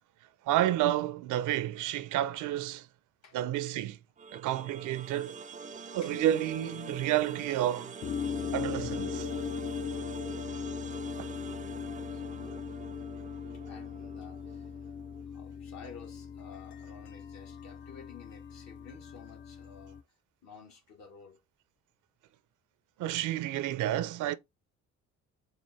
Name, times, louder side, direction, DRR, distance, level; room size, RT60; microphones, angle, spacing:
voice 1, 0.4-2.9 3.3-4.0 4.3-5.4 5.9-7.9 8.5-9.3 11.2-11.3 23.0-24.4, right 13 dB, 85° right, 0.5 m, -30 dB
sound 1, 4.2-15.2, right 5 dB, 25° right, 0.4 m, -45 dB
sound 2, 6.1-7.7 8.0-20.0, left 7 dB, 40° left, 0.4 m, -39 dB
voice 2, 12.0-12.8 13.5-14.8 15.3-20.0 20.4-21.4, left 6 dB, 60° left, 1.3 m, -52 dB
4.7 x 2.5 x 3.2 m
cardioid pair, 90°, 30 cm